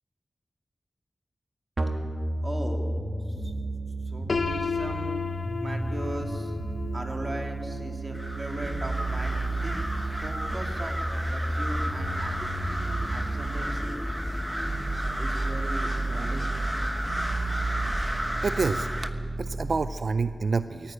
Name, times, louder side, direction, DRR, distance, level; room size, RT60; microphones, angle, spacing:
sound 1, 1.8-19.8, right 2 dB, 50° right, 1.8 m, -32 dB
voice 1, 2.4-2.9 3.2-3.5 4.0-5.2 5.6-6.6 6.9-9.8 10.2-11.0 11.3-12.5 13.1-14.0 15.2-16.5, right 1 dB, 30° right, 3 dB, 2.5 m, -38 dB
Piano, 4.3-10.1, left 4 dB, 70° left, 0.8 m, -35 dB
sound 2, 8.1-19.1, equal, 5° right, 1.1 m, -33 dB
voice 2, 18.4-18.9 19.4-20.9, right 4 dB, 75° right, 12 dB, 0.4 m, -28 dB
18.5 x 14.0 x 9.9 m, 2.3 s
wide cardioid pair, 100°, 0 cm